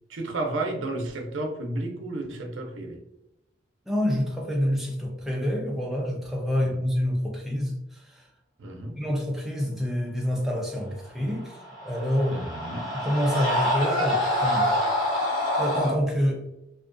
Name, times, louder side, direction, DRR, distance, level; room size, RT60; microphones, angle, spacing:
voice 1, 0.1-3.0 6.6-6.8 8.6-9.0 12.3-12.9, right 2 dB, 85° right, 2 dB, 0.5 m, -32 dB
voice 2, 3.9-8.2 9.0-12.4 12.9-14.8 15.6-16.5, equal, ahead, -2 dB, 0.3 m, -27 dB
Screaming, 11.5-16.0, left 1 dB, 45° left, 1.2 m, -26 dB
2.4 x 2.2 x 2.4 m, 0.86 s
head